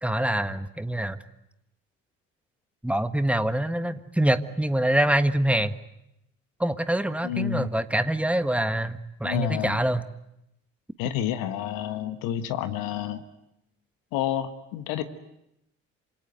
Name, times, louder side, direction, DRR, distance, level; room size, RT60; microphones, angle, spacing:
voice 1, 0.0-1.2 2.8-5.7 6.6-10.0, right 1 dB, 5° right, 11 dB, 1.6 m, -25 dB
voice 2, 7.2-7.7 9.2-9.8 11.0-13.2 14.1-15.0, left 9 dB, 65° left, 9 dB, 1.7 m, -29 dB
27.5 x 26.5 x 8.1 m, 0.83 s
figure-of-eight pair, 45°, 38 cm